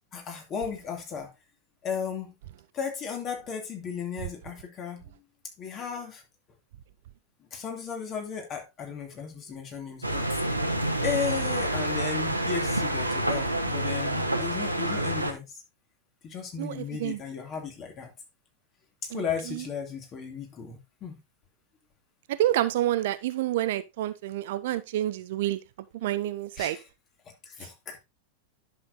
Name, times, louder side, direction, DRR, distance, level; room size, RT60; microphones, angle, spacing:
voice 1, 0.1-1.3 1.8-2.3 2.7-5.0 5.6-6.2 7.5-10.3 11.0-15.6 16.2-18.1 19.0-21.2 26.6-26.9 27.5-28.0, left 6 dB, 30° left, 2.6 m, -35 dB
sound 1, 10.0-15.3, right 1 dB, 85° right, 1.1 m, -28 dB
voice 2, 16.6-17.2 22.4-25.6 26.0-26.8, right 13 dB, 55° right, 0.6 m, -28 dB
10.5 x 6.7 x 2.7 m
figure-of-eight pair, 90°, 0 cm